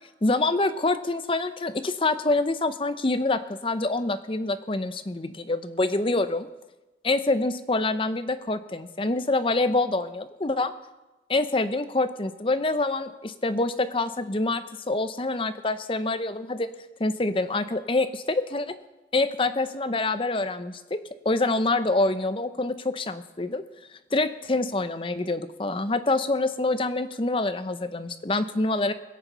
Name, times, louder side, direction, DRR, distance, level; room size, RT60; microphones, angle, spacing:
voice 1, 0.2-6.5 7.0-10.7 11.3-16.7 17.0-18.7 19.1-23.6 24.1-28.9, left 2 dB, 30° left, 10 dB, 0.6 m, -26 dB
21.0 x 7.2 x 5.6 m, 1.1 s
head